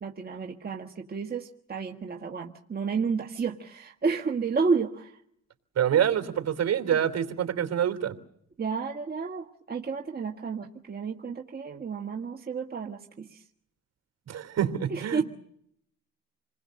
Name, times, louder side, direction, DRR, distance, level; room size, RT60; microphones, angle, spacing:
voice 1, 0.0-5.1 8.6-13.4 14.9-15.2, right 5 dB, 30° right, 2 dB, 1.6 m, -31 dB
voice 2, 5.8-8.1 14.3-15.2, right 9 dB, 55° right, 7 dB, 3.3 m, -26 dB
28.0 x 20.5 x 6.5 m, 0.70 s
cardioid pair, 90°, 30 cm